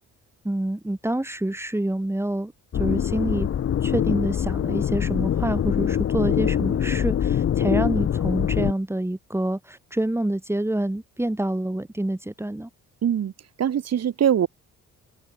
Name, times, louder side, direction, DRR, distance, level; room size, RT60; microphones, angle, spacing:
voice 1, 0.4-3.5 3.8-12.7, right 1 dB, 10° right, 6.7 m, -27 dB
sound 1, 2.7-8.7, left 9 dB, 50° left, 1.1 m, -24 dB
voice 2, 13.0-13.3 13.6-14.5, right 9 dB, 55° right, 2.9 m, -22 dB
open air
cardioid pair, 90°, 30 cm